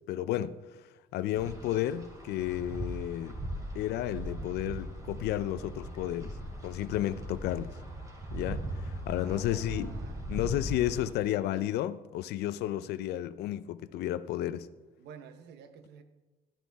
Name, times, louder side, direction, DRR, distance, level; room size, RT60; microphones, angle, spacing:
voice 1, 0.1-0.6 1.1-3.4 3.7-6.4 6.6-7.7 8.3-9.9 10.3-14.7, left 13 dB, 75° left, 0.5 m, -32 dB
Wind, 1.4-11.1, right 1 dB, 20° right, 2.7 m, -39 dB
voice 2, 9.1-10.2 14.4-14.6 15.0-16.0, right 8 dB, 80° right, 1.0 m, -50 dB
12.0 x 11.5 x 3.5 m
cardioid pair, 110°, 17 cm